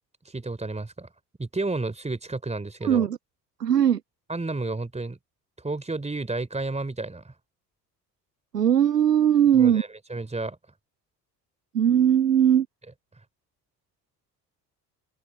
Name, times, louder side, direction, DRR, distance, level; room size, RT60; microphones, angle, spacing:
voice 1, 0.3-1.1 1.4-3.1 4.3-5.2 5.6-7.3 9.5-10.6, right 3 dB, 15° right, 4.0 m, -31 dB
voice 2, 2.8-3.2 3.6-4.0 8.5-9.8 11.7-12.7, right 9 dB, 90° right, 0.6 m, -19 dB
open air
figure-of-eight pair, 55°, 47 cm